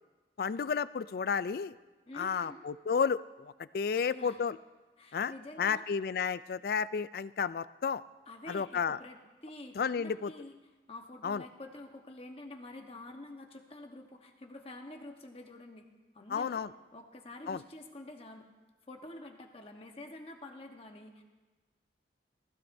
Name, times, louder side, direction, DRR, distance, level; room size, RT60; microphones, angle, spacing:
voice 1, 0.4-1.8 2.2-4.6 5.1-5.3 5.6-8.0 8.5-9.0 9.8-10.3 11.2-11.4 16.3-16.7 17.5-17.6, left 6 dB, 55° left, 16 dB, 0.3 m, -32 dB
voice 2, 2.1-2.6 3.9-4.4 5.0-5.8 8.3-10.6 10.9-15.9 16.1-16.6 16.9-18.5 18.9-21.2, left 1 dB, 30° left, 3 dB, 1.2 m, -48 dB
19.0 x 15.0 x 2.7 m, 1.2 s
head